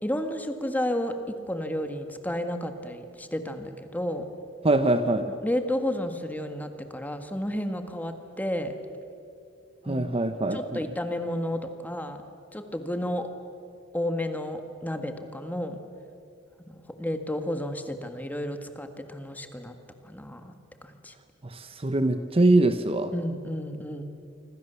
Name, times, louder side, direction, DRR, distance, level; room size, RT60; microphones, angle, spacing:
voice 1, 0.0-4.2 5.4-8.7 9.8-10.0 10.5-12.2 12.5-13.3 13.9-15.8 16.7-19.8 20.0-20.5 20.8-21.1 23.1-24.0, left 1 dB, 10° left, 6 dB, 1.8 m, -32 dB
voice 2, 4.6-5.3 9.9-10.8 21.5-23.1, right 2 dB, 30° right, 9 dB, 1.0 m, -23 dB
26.5 x 25.5 x 7.0 m, 2.6 s
head